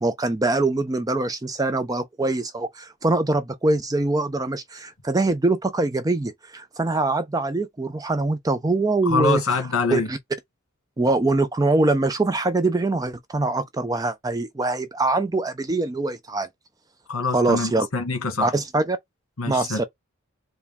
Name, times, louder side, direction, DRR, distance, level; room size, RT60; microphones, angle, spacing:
voice 1, 0.0-9.4 9.9-10.2 11.0-16.5 17.3-17.9 18.4-19.0 19.5-19.8, right 2 dB, 15° right, 0.4 m, -23 dB
voice 2, 9.0-10.1 17.1-18.5 19.4-19.8, left 4 dB, 70° left, 1.7 m, -24 dB
4.6 x 2.2 x 3.5 m
head